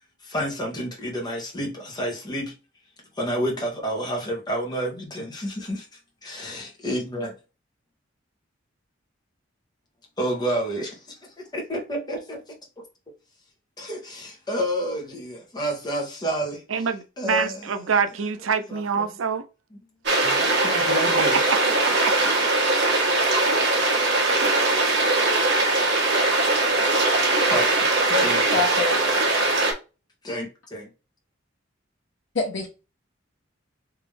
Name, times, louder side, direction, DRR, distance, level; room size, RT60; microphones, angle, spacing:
voice 1, 0.2-2.5 3.2-5.8 6.2-7.3 10.2-11.0 11.4-12.8 13.8-16.9 17.2-17.9 18.7-19.1 19.7-19.8 20.6-21.5 27.5-28.6 30.2-30.9, equal, 20° left, 1.3 m, -30 dB
voice 2, 16.7-19.4 22.1-22.2, right 6 dB, 85° right, 0.5 m, -25 dB
sound 1, 20.1-29.7, right 2 dB, 65° right, 1.3 m, -21 dB
voice 3, 28.5-29.0 32.3-32.7, left 3 dB, 70° left, 1.0 m, -25 dB
3.5 x 2.9 x 3.3 m
head